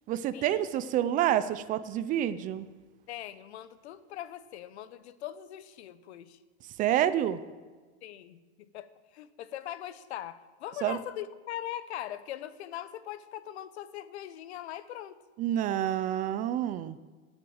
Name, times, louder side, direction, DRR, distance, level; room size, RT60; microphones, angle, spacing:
voice 1, 0.1-2.7 6.8-7.4 10.8-11.0 15.4-17.0, right 11 dB, 25° right, 14 dB, 0.4 m, -28 dB
voice 2, 3.1-6.4 8.0-8.9 9.1-15.2, left 12 dB, 80° left, 14 dB, 1.1 m, -41 dB
17.5 x 8.0 x 7.8 m, 1.4 s
supercardioid pair, 155°, 33 cm